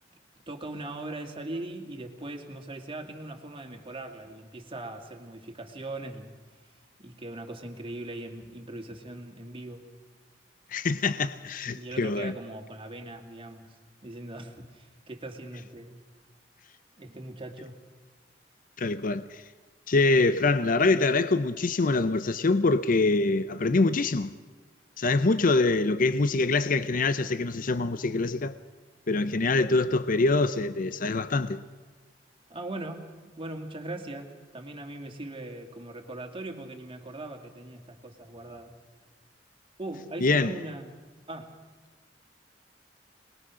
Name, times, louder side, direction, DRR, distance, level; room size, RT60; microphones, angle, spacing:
voice 1, 0.5-6.3 7.0-9.9 11.7-13.8 14.0-16.0 17.0-17.8 32.5-38.7 39.8-40.9 41.3-41.5, right 2 dB, 30° right, 2.3 m, -40 dB
voice 2, 10.7-12.3 18.8-19.4 19.9-24.3 25.0-28.6 29.1-31.6 40.2-40.6, left 3 dB, 50° left, 0.6 m, -24 dB
26.5 x 20.0 x 6.3 m
head